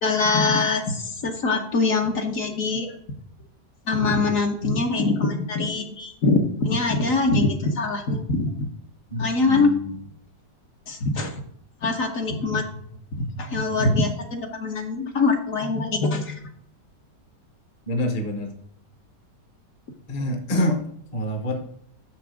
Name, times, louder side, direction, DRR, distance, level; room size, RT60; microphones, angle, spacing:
voice 1, 0.0-2.9 3.9-8.7 9.2-9.8 10.9-11.3 11.8-12.6 13.2-16.4, left 3 dB, 55° left, 3 dB, 1.2 m, -23 dB
voice 2, 9.1-10.0 17.9-18.5 20.1-21.6, left 1 dB, 30° left, 5 dB, 0.8 m, -27 dB
6.5 x 6.0 x 4.9 m, 0.66 s
omnidirectional pair, 1.9 m